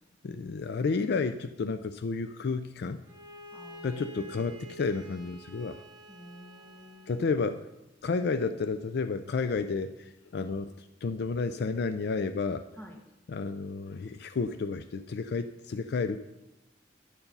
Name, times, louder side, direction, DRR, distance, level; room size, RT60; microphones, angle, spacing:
voice 1, 0.2-3.0 3.8-5.8 7.1-7.6 8.0-12.6 13.3-16.2, left 4 dB, 60° left, 10 dB, 0.4 m, -31 dB
Bowed string instrument, 3.0-7.3, right 2 dB, 25° right, 1.6 m, -48 dB
voice 2, 3.5-4.0 6.1-7.4 12.8-13.0, left 1 dB, 15° left, 1 dB, 1.6 m, -49 dB
10.0 x 7.1 x 5.4 m, 0.95 s
head